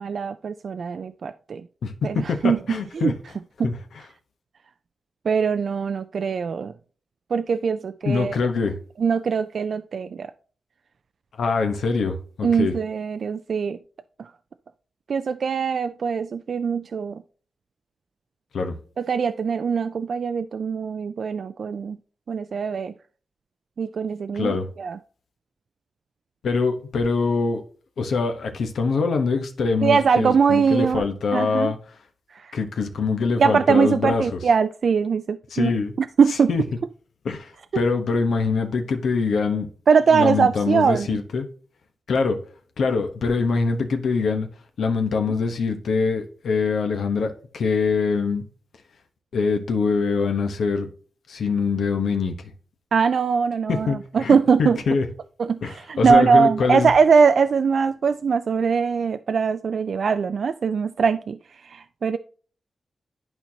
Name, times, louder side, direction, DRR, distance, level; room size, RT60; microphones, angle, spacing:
voice 1, 0.0-1.7 2.0-3.1 3.6-3.7 5.3-6.7 7.3-8.4 9.0-10.3 12.4-13.8 14.2-14.3 15.1-17.2 19.1-22.0 22.3-22.9 23.8-25.0 29.8-31.0 31.3-31.7 32.3-32.5 33.4-36.5 37.7-37.8 39.9-41.2 52.9-54.8 55.4-61.4 61.6-62.2, right 6 dB, 70° right, 0.3 m, -22 dB
voice 2, 1.8-3.1 3.6-3.8 8.0-8.8 11.4-12.7 18.5-18.8 24.3-24.7 26.4-27.6 28.0-31.8 32.5-34.4 35.5-35.9 36.3-36.6 37.2-39.7 40.1-41.5 42.1-42.4 42.8-44.5 44.8-48.4 49.3-50.9 51.3-52.5 53.7-55.1 55.6-56.9, left 4 dB, 85° left, 1.0 m, -24 dB
11.0 x 4.5 x 2.8 m
cardioid pair, 70°, 0 cm